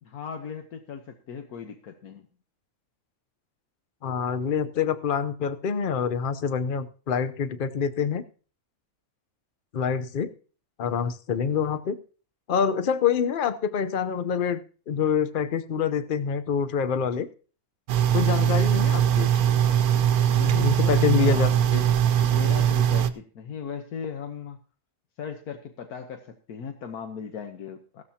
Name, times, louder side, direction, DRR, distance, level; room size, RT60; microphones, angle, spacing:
voice 1, 0.0-2.3 20.3-21.8 22.2-24.6 25.2-28.0, left 7 dB, 85° left, 5 dB, 1.5 m, -37 dB
voice 2, 4.0-8.2 9.7-10.3 10.8-12.0 12.5-14.6 14.9-17.3 18.1-19.3 20.6-21.8, left 7 dB, 45° left, 11 dB, 0.8 m, -26 dB
sound 1, 17.9-23.1, right 9 dB, 90° right, 1.2 m, -21 dB
16.0 x 13.0 x 2.8 m, 0.39 s
omnidirectional pair, 1.5 m